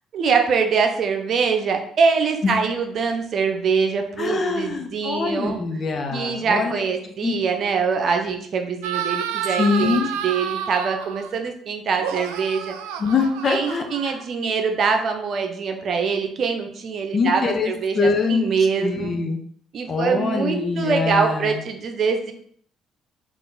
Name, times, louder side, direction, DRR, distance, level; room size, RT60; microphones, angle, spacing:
voice 1, 0.1-5.6 6.1-12.7 13.5-19.1 19.7-22.3, right 5 dB, 55° right, 4 dB, 0.7 m, -23 dB
voice 2, 4.2-6.8 7.2-7.4 9.6-10.1 13.0-14.2 17.1-18.5 18.8-19.4 19.9-21.6, left 4 dB, 45° left, 3 dB, 0.8 m, -23 dB
sound 1, 8.8-11.3 12.0-14.5, right 8 dB, 80° right, 0.3 m, -30 dB
3.8 x 2.6 x 3.9 m, 0.63 s
hypercardioid pair, 55°, 0 cm